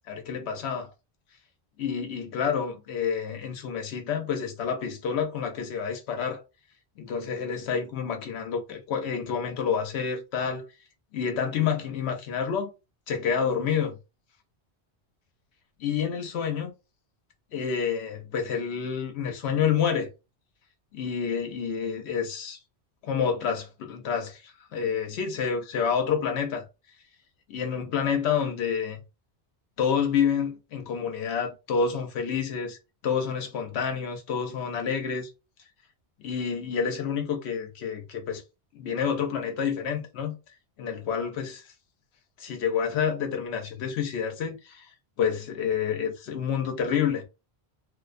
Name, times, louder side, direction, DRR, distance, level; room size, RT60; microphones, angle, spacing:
voice 1, 0.1-0.9 1.8-6.4 7.0-10.6 11.1-12.7 13.1-13.9 15.8-16.7 17.5-20.1 20.9-22.6 23.0-26.7 27.5-29.0 29.8-32.8 33.0-35.3 36.2-38.4 38.7-40.4 40.8-41.6 42.4-44.9 45.2-47.2, left 7 dB, 75° left, 0.8 m, -28 dB
2.4 x 2.1 x 2.4 m
omnidirectional pair, 1.1 m